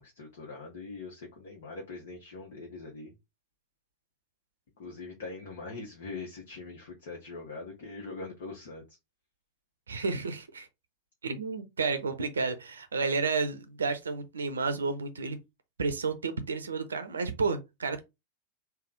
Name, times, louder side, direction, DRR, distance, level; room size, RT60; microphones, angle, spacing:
voice 1, 0.0-3.1 4.8-8.8, left 3 dB, 55° left, 1.0 m, -42 dB
voice 2, 9.9-10.7 11.2-15.4 15.8-18.0, right 4 dB, 70° right, 0.6 m, -31 dB
3.4 x 2.3 x 3.9 m
figure-of-eight pair, 90°, 0 cm